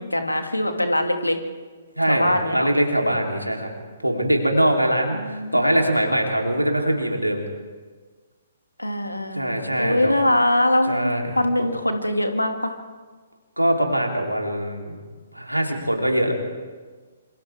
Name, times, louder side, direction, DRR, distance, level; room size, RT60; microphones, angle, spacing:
voice 1, 0.0-1.4 2.1-2.7 5.1-5.8 8.8-11.0 11.4-12.7, left 1 dB, 85° left, 5 dB, 2.5 m, -23 dB
voice 2, 2.0-3.7 4.0-7.4 9.3-10.1 10.9-11.7 13.6-15.0 15.3-16.3, right 1 dB, 90° right, 1 dB, 3.6 m, -22 dB
27.5 x 26.5 x 3.6 m, 1.5 s
figure-of-eight pair, 125°, 0 cm